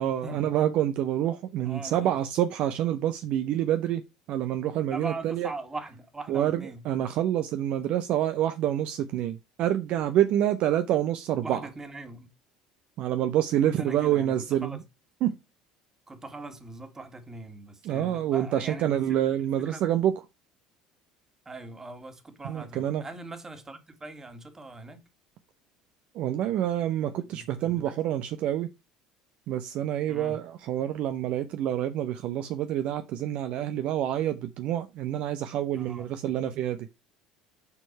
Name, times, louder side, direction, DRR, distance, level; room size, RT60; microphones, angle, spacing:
voice 1, 0.0-4.0 4.3-5.5 6.3-11.6 13.0-14.8 15.2-15.3 17.8-20.1 22.4-23.0 26.1-28.7 29.5-36.8, right 11 dB, 55° right, 0.6 m, -27 dB
voice 2, 1.6-2.2 4.9-6.8 11.4-12.3 13.6-14.8 16.1-19.2 19.6-19.8 21.5-25.0 27.3-28.0 30.1-30.4 35.7-36.1, right 2 dB, 20° right, 1.9 m, -41 dB
6.9 x 4.5 x 4.5 m
figure-of-eight pair, 65°, 2 cm